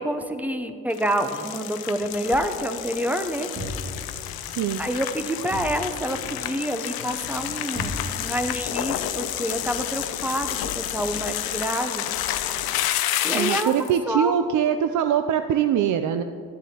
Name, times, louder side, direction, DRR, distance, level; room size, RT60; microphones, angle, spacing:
voice 1, 0.0-3.5 4.8-12.0 13.2-13.7 14.0-14.3, equal, 5° right, 7 dB, 0.7 m, -27 dB
sound 1, 0.9-13.9, left 12 dB, 70° left, 0.6 m, -30 dB
Thump thud, 3.6-4.1 5.5-6.0 7.8-8.4, equal, 30° right, 2.0 m, -34 dB
voice 2, 4.4-4.8 13.3-16.2, right 9 dB, 55° right, 9 dB, 0.5 m, -23 dB
13.0 x 8.1 x 2.9 m, 2.4 s
supercardioid pair, 80°, 38 cm